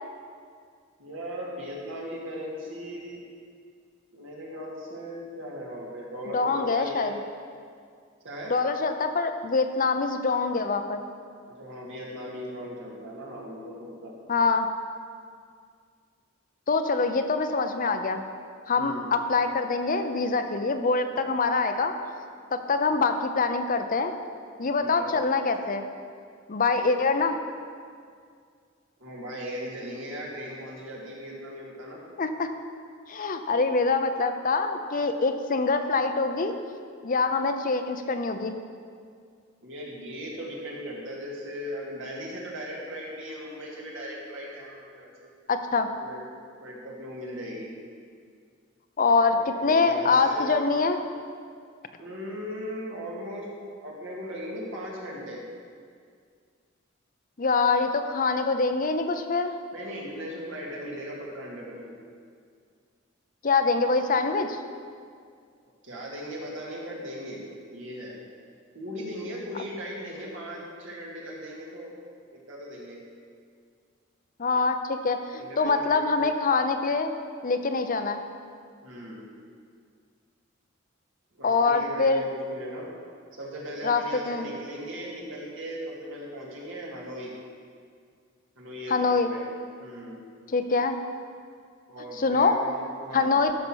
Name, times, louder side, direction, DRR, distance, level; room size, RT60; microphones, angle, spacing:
voice 1, 1.0-3.2 4.1-7.1 8.2-8.5 11.6-14.1 18.8-19.1 24.8-25.1 29.0-32.0 39.6-45.3 46.0-46.2 46.6-47.7 49.3-50.6 52.0-53.5 53.8-55.4 59.7-62.0 65.8-67.4 67.7-68.2 68.7-71.9 72.3-73.0 75.4-76.2 78.8-79.2 81.3-82.9 83.3-87.3 88.6-89.5 89.8-90.2 91.9-93.3, equal, 70° right, -3 dB, 2.4 m, -38 dB
voice 2, 6.3-7.1 8.5-11.0 14.3-14.7 16.7-18.2 18.7-22.0 22.5-24.1 24.6-25.9 26.5-27.4 32.2-32.5 33.1-36.5 37.0-38.6 45.5-45.9 49.0-51.0 57.4-59.5 63.4-64.6 74.4-77.1 77.4-78.2 81.4-82.2 83.8-84.5 88.9-89.3 90.5-91.0 92.2-92.6 93.1-93.6, left 4 dB, 45° left, 7 dB, 0.7 m, -24 dB
13.5 x 5.5 x 6.3 m, 2.2 s
head